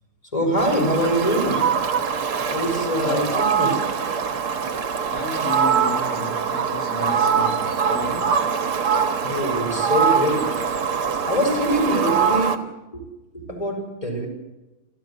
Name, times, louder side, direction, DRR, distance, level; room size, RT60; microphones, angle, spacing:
voice 1, 0.3-1.7 2.5-3.9 9.2-10.6 11.2-13.0 13.3-14.3, equal, 15° left, 5.3 m, -24 dB
Fowl, 0.6-12.6, right 6 dB, 75° right, 2.4 m, -23 dB
voice 2, 3.0-3.4 5.1-8.5, left 3 dB, 80° left, 3.0 m, -33 dB
28.5 x 14.5 x 8.4 m
omnidirectional pair, 2.4 m